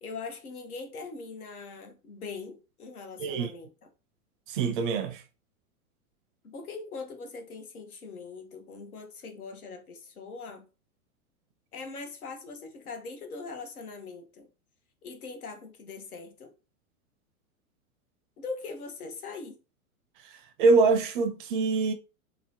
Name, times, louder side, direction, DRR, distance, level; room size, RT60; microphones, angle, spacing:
voice 1, 0.0-3.7 6.4-10.6 11.7-14.5 15.0-16.5 18.4-19.6, left 4 dB, 85° left, 0.8 m, -41 dB
voice 2, 4.5-5.2 20.6-21.9, right 4 dB, 40° right, 0.4 m, -24 dB
2.8 x 2.0 x 2.7 m
hypercardioid pair, 105°, 43 cm